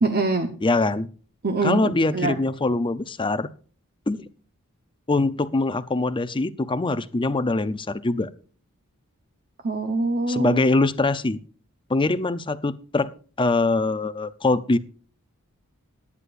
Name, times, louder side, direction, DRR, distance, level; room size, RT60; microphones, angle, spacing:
voice 1, 0.0-0.5 1.4-2.4 9.6-10.6, right 2 dB, 45° right, 6 dB, 1.0 m, -24 dB
voice 2, 0.6-1.1 1.6-3.5 4.1-4.3 5.1-8.3 10.3-11.4 11.9-13.1 13.4-14.8, left 2 dB, 25° left, 14 dB, 0.6 m, -23 dB
19.0 x 9.8 x 2.5 m, 0.39 s
head